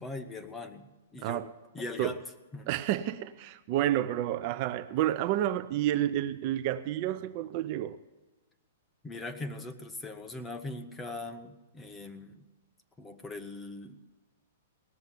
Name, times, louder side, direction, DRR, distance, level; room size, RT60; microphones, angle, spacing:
voice 1, 0.0-1.4 1.7-2.2 2.5-2.7 9.0-12.5 13.0-14.2, left 2 dB, 10° left, 0.8 m, -41 dB
voice 2, 2.7-8.0, right 12 dB, 35° right, 0.4 m, -30 dB
18.0 x 6.9 x 9.7 m
hypercardioid pair, 165°, 0 cm